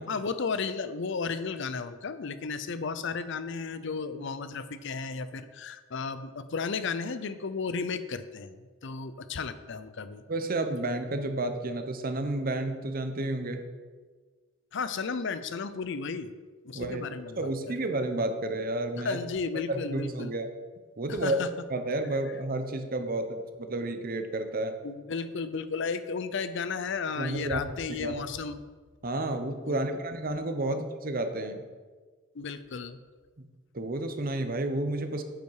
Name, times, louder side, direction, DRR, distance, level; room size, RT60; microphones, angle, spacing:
voice 1, 0.1-10.2 14.7-16.3 16.6-17.5 19.0-20.3 21.1-21.5 24.8-28.6 29.6-30.0 30.6-30.8 32.3-33.0, left 5 dB, 60° left, 12 dB, 0.5 m, -34 dB
voice 2, 10.3-13.6 16.7-17.0 17.4-19.2 19.7-20.5 21.0-21.4 21.7-24.8 27.2-27.6 27.9-28.2 29.0-31.6 33.7-35.2, right 2 dB, 45° right, 7 dB, 0.9 m, -31 dB
9.0 x 8.3 x 4.8 m, 1.4 s
head